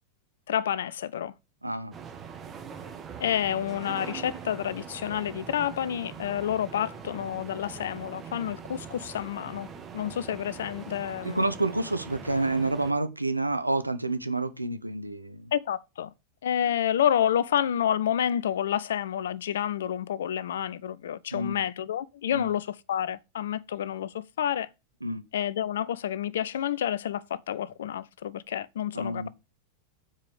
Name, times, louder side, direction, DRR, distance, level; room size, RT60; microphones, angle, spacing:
voice 1, 0.5-1.3 3.2-9.7 9.9-11.4 15.5-16.1 16.4-24.7 25.3-29.3, left 10 dB, 60° left, 0.5 m, -29 dB
voice 2, 1.6-1.9 11.2-15.5 21.3-21.6 22.3-22.5 25.0-25.2 28.9-29.3, right 2 dB, 85° right, 0.7 m, -29 dB
sound 1, 1.9-12.9, right 6 dB, 25° right, 1.2 m, -42 dB
7.3 x 4.9 x 5.1 m
figure-of-eight pair, 90°, 0 cm